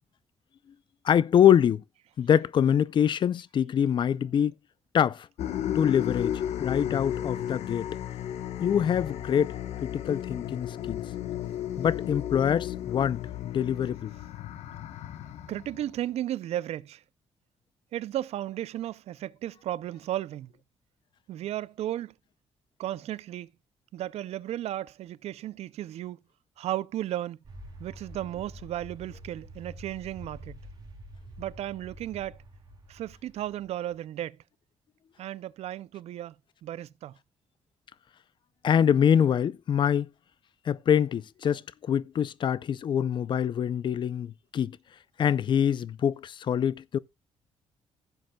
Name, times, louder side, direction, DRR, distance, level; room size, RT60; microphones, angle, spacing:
voice 1, 1.0-1.8 2.2-4.5 4.9-5.3 5.7-7.9 8.6-9.5 9.8-11.0 11.8-13.2 13.5-14.1 38.6-40.1 40.7-44.8 45.2-47.0, left 9 dB, 45° left, 0.4 m, -24 dB
sound 1, 5.4-16.0, left 11 dB, 85° left, 1.1 m, -34 dB
voice 2, 15.5-17.0 17.9-20.5 21.3-22.1 22.8-23.5 23.9-26.2 26.6-27.4 27.8-30.6 31.4-32.4 32.9-34.4 35.2-36.3 36.6-37.2, right 13 dB, 75° right, 0.4 m, -34 dB
sound 2, 27.4-33.9, right 1 dB, 35° right, 3.2 m, -47 dB
15.5 x 7.8 x 2.2 m
cardioid pair, 135°, 11 cm